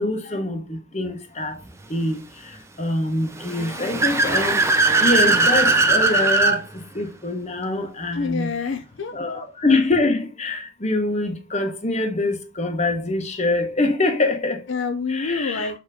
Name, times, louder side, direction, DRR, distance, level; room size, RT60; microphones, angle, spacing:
voice 1, 0.0-1.6 1.9-4.7 5.0-8.5 9.1-14.6 15.1-15.7, left 2 dB, 35° left, 1.1 m, -24 dB
Car / Accelerating revving vroom, 3.4-6.6, right 3 dB, 15° right, 0.6 m, -19 dB
voice 2, 8.1-9.1 14.7-15.8, left 4 dB, 60° left, 0.5 m, -27 dB
6.8 x 3.0 x 4.9 m
head